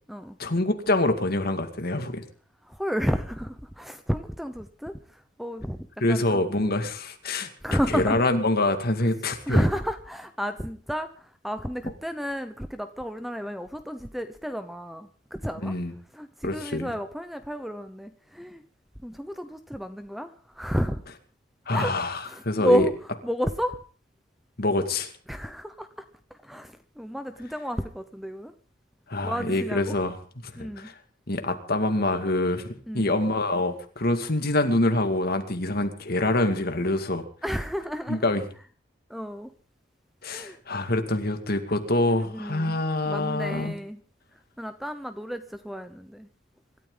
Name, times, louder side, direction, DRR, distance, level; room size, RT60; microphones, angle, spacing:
voice 1, 0.4-2.2 6.0-7.5 7.9-9.7 15.6-15.9 16.4-16.9 21.7-22.9 24.6-25.1 29.1-30.2 30.4-30.9 31.3-37.2 38.1-38.4 40.2-43.7, left 2 dB, 50° left, 6 dB, 2.2 m, -25 dB
voice 2, 2.7-5.8 6.1-6.7 7.6-8.2 9.5-15.7 16.1-18.6 19.0-21.0 21.7-21.9 22.3-23.8 25.3-25.9 26.3-28.5 29.2-30.0 30.6-30.9 32.9-33.2 37.4-38.3 39.1-39.5 40.3-40.6 42.2-44.0 44.6-46.3, equal, ahead, 9 dB, 0.8 m, -31 dB
26.0 x 13.0 x 3.9 m, 0.40 s
head